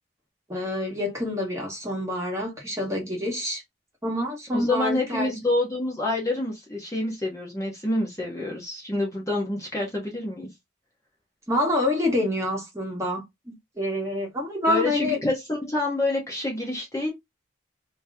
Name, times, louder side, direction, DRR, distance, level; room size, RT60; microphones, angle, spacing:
voice 1, 0.5-3.6 4.0-5.3 11.5-13.2 13.8-15.2, left 1 dB, 15° right, 1.3 m, -27 dB
voice 2, 4.5-10.5 14.7-17.1, left 2 dB, 15° left, 1.0 m, -27 dB
2.9 x 2.9 x 3.5 m
head